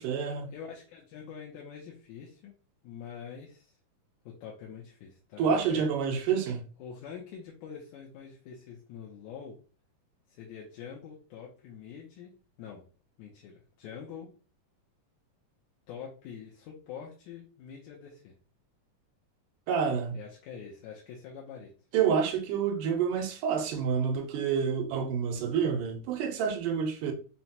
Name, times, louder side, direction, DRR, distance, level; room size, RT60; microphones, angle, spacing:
voice 1, 0.0-0.5 5.4-6.6 19.7-20.2 21.9-27.1, right 7 dB, 85° right, 2.1 m, -28 dB
voice 2, 0.5-2.5 2.8-3.8 4.3-5.9 6.8-9.6 10.3-12.8 13.2-14.3 15.9-18.3 20.1-21.7, left 7 dB, 80° left, 2.0 m, -45 dB
5.8 x 2.1 x 2.7 m
omnidirectional pair, 3.8 m